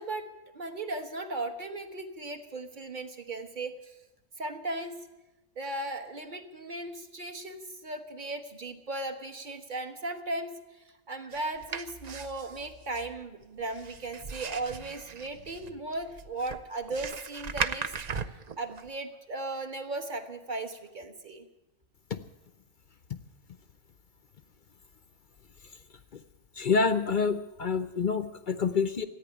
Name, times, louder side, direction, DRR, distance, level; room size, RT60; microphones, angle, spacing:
voice 1, 0.0-4.0 4.4-5.0 5.6-21.5, right 2 dB, 35° right, 7 dB, 1.2 m, -37 dB
sound 1, 11.3-18.9, right 5 dB, 55° right, 0.4 m, -38 dB
voice 2, 26.6-29.0, left 5 dB, 55° left, 12 dB, 0.5 m, -27 dB
14.0 x 9.4 x 9.9 m, 1.0 s
omnidirectional pair, 1.5 m